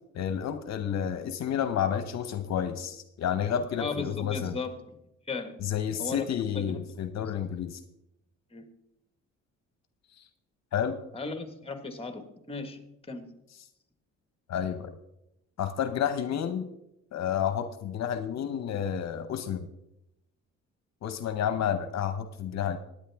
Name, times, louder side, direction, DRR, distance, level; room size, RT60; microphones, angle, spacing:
voice 1, 0.1-4.5 5.6-7.8 10.2-10.3 10.7-11.0 14.5-14.9 15.6-16.7 17.1-19.7 21.0-22.8, left 9 dB, 60° left, 9 dB, 0.8 m, -30 dB
voice 2, 3.7-4.9 5.3-5.5 6.0-6.3 6.5-6.8 7.2-7.3 8.5-8.6 11.1-12.8 13.1-13.3, left 4 dB, 20° left, 7 dB, 1.5 m, -36 dB
15.5 x 9.7 x 3.5 m, 0.85 s
cardioid pair, 90°, 30 cm